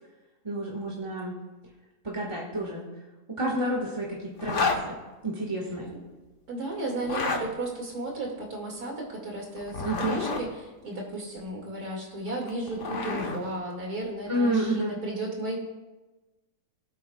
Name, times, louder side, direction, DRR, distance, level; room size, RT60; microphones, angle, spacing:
voice 1, 0.4-1.3 2.0-2.8 3.3-5.0 5.2-5.9 9.8-10.2 14.3-14.9, right 1 dB, 20° right, -5 dB, 1.6 m, -29 dB
Zipper (clothing), 4.4-4.8 6.9-7.4 9.6-10.4 12.3-13.4, left 4 dB, 55° left, 1.4 m, -29 dB
voice 2, 6.5-15.6, right 2 dB, 75° right, -1 dB, 2.9 m, -34 dB
20.5 x 8.4 x 2.4 m, 1.1 s
omnidirectional pair, 1.6 m